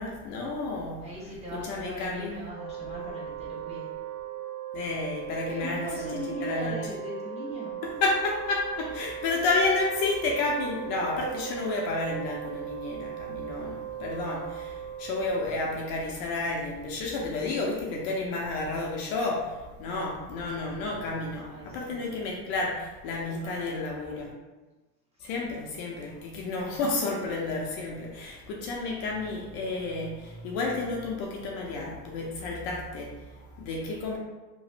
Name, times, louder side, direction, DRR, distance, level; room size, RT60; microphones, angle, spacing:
voice 1, 0.0-1.0 1.5-2.3 4.7-5.9 6.4-6.7 7.8-24.3 25.2-34.2, left 3 dB, 50° left, -2 dB, 0.7 m, -31 dB
voice 2, 1.0-3.9 5.4-7.7 21.4-22.1 23.3-24.3, equal, 15° right, -8 dB, 1.1 m, -39 dB
Wind instrument woodwind instrument, 2.5-15.9, right 10 dB, 90° right, 0.7 m, -38 dB
2.9 x 2.1 x 3.2 m, 1.2 s
supercardioid pair, 110°, 46 cm